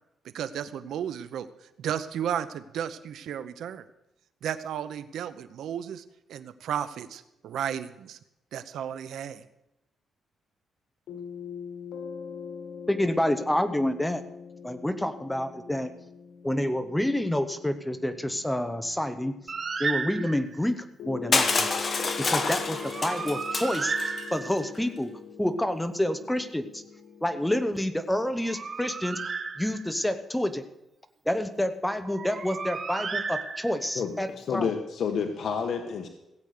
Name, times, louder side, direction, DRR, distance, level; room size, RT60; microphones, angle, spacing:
voice 1, 0.2-1.5 1.8-3.8 4.4-6.0 6.3-8.2 8.5-9.5, right 9 dB, 80° right, 12 dB, 0.8 m, -33 dB
sound 1, 11.1-19.8 21.0-28.6, left 7 dB, 90° left, 2.0 m, -43 dB
voice 2, 12.9-14.2 14.6-15.9 16.4-19.3 19.8-21.7 22.2-23.9 24.3-25.1 25.4-26.8 27.2-29.2 29.6-30.6 31.3-34.7, left 1 dB, 5° left, 10 dB, 0.9 m, -28 dB
Bird, 19.5-20.6 22.7-24.8 28.2-30.1 32.1-34.0, right 5 dB, 40° right, 0.9 m, -34 dB
Crushing, 21.3-24.2, left 4 dB, 35° left, 1.4 m, -27 dB
voice 3, 33.9-36.1, left 6 dB, 60° left, 4 dB, 1.3 m, -30 dB
16.0 x 8.3 x 6.6 m, 0.87 s
cardioid pair, 110°, 0 cm